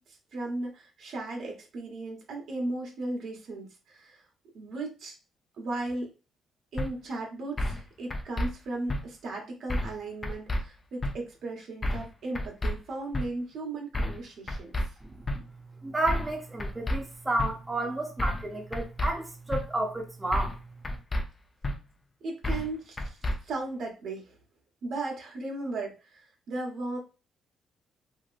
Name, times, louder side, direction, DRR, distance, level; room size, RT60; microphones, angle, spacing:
voice 1, 0.0-4.2 4.5-5.1 5.6-6.1 6.7-14.9 22.2-23.2 23.4-24.4 24.8-27.0, right 2 dB, 70° right, 1.1 m, -36 dB
sound 1, 6.8-6.9 7.6-7.8 8.1-8.5 8.9-9.0 9.7-10.0 10.2-10.6 11.0-11.1 11.8-12.1 12.3-12.7 13.1-13.3 13.9-14.2 14.5-14.9 15.3-15.4 16.1-16.3 16.6-17.0 17.4-17.5 18.2-18.5 18.7-19.1 19.5-19.6 20.3-20.6 20.8-21.2 21.6-21.8 22.4-22.7 23.0-23.4, left 1 dB, 25° left, 0.5 m, -29 dB
voice 2, 15.0-15.4 15.8-20.6, right 2 dB, 15° right, 0.7 m, -31 dB
2.9 x 2.8 x 2.5 m
cardioid pair, 90°, 0 cm